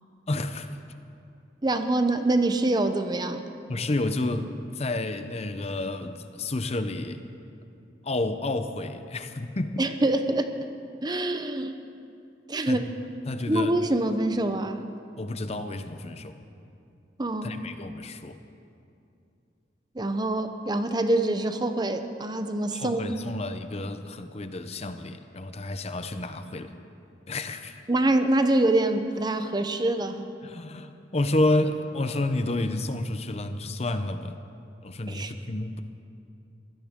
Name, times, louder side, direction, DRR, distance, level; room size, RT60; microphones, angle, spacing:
voice 1, 0.3-0.8 3.7-7.2 8.0-9.8 12.6-12.8 13.3-13.8 15.2-16.4 17.4-18.4 22.7-26.8 27.3-27.8 30.4-34.4 34.8-35.8, left 2 dB, 35° left, 9 dB, 0.7 m, -30 dB
voice 2, 1.6-3.4 9.8-10.5 11.0-11.7 12.5-12.9 13.5-14.8 17.2-17.5 19.9-23.2 27.9-30.3 35.1-35.3, right 2 dB, 25° right, 8 dB, 0.7 m, -25 dB
23.0 x 16.0 x 3.7 m, 2.6 s
head